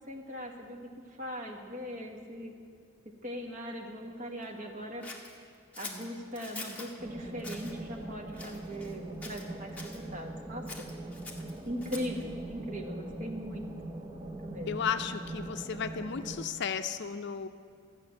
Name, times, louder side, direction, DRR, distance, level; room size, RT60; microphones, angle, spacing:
voice 1, 0.1-0.8 1.2-2.5 3.2-5.0 5.8-10.6 11.6-13.7 14.2-14.8, equal, 40° right, 2 dB, 1.3 m, -40 dB
Scissors, 5.0-6.9 7.4-7.7 8.3-9.0 9.2-10.0 10.6-12.2, left 3 dB, 5° left, 1.1 m, -44 dB
sound 1, 7.0-16.5, right 2 dB, 15° right, 0.7 m, -42 dB
voice 2, 14.7-17.5, left 6 dB, 55° left, 9 dB, 0.5 m, -34 dB
13.0 x 6.6 x 8.8 m, 2.3 s
head